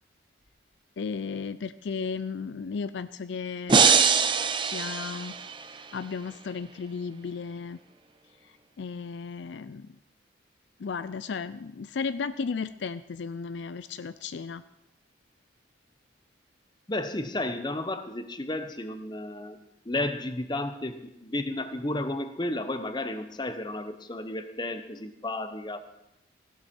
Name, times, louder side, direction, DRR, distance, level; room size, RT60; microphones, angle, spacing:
voice 1, 1.0-4.1 4.6-5.4 5.9-7.8 8.8-9.9 10.8-14.6, left 5 dB, 65° left, 14 dB, 0.4 m, -34 dB
sound 1, 3.7-5.8, right 5 dB, 25° right, 0.6 m, -23 dB
voice 2, 16.9-19.6 19.8-25.8, left 1 dB, 20° left, 9 dB, 0.8 m, -32 dB
16.0 x 11.5 x 4.4 m, 0.86 s
head